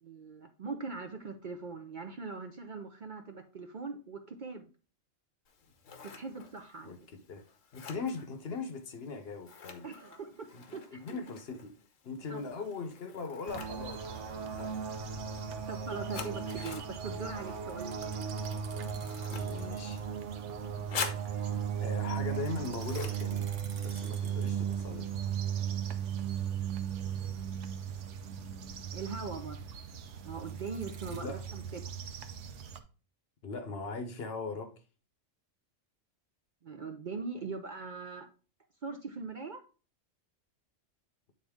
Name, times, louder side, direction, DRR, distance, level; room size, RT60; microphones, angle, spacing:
voice 1, 0.0-4.7 6.1-6.9 9.8-11.2 12.3-12.4 15.7-18.3 28.9-29.6 30.2-31.8 36.6-38.3 38.8-39.6, right 4 dB, 50° right, 0.6 m, -41 dB
Scissors, 5.5-24.3, left 5 dB, 85° left, 1.3 m, -47 dB
voice 2, 6.8-7.4 7.7-9.8 10.5-11.7 12.0-14.8 19.3-20.0 21.2-23.5 23.8-25.1 31.1-31.4 33.4-34.7, left 4 dB, 55° left, 1.0 m, -40 dB
sound 1, 13.5-32.8, right 8 dB, 70° right, 1.0 m, -37 dB
sound 2, 17.6-20.1 20.3-20.4 22.3-25.0 30.3-31.2, right 5 dB, 85° right, 1.4 m, -54 dB
8.8 x 4.0 x 3.5 m
omnidirectional pair, 1.3 m